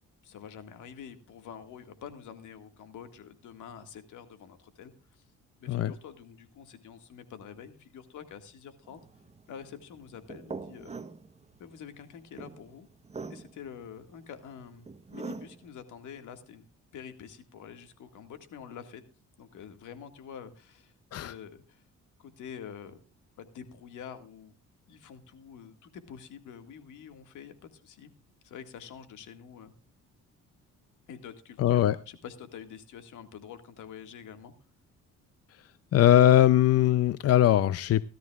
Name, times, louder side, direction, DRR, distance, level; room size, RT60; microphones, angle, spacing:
voice 1, 0.2-5.2 5.6-9.0 9.5-10.9 11.6-12.9 13.3-16.7 16.9-19.0 19.4-21.8 22.2-23.0 23.4-24.5 24.9-28.1 28.4-29.7 31.1-34.5, left 7 dB, 80° left, 8 dB, 1.9 m, -47 dB
sound 1, 8.8-15.7, right 4 dB, 20° right, 1.0 m, -44 dB
voice 2, 31.6-32.0 35.9-38.0, left 12 dB, 55° left, 16 dB, 0.5 m, -21 dB
17.0 x 13.0 x 2.3 m, 0.37 s
cardioid pair, 90°, 30 cm